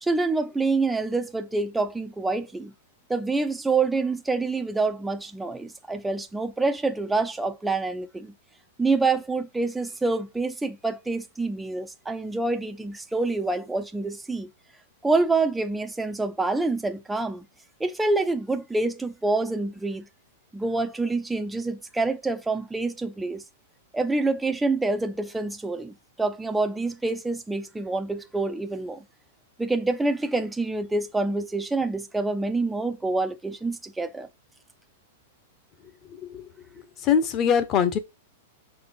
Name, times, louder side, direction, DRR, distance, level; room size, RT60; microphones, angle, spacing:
voice 1, 0.0-2.7 3.1-8.3 8.8-14.5 15.0-17.4 17.8-20.1 20.5-23.4 23.9-29.0 29.6-34.3, right 3 dB, 5° right, 0.6 m, -27 dB
voice 2, 36.1-36.4 37.0-38.0, left 7 dB, 30° left, 1.1 m, -22 dB
6.1 x 4.3 x 5.3 m
hypercardioid pair, 145°, 0 cm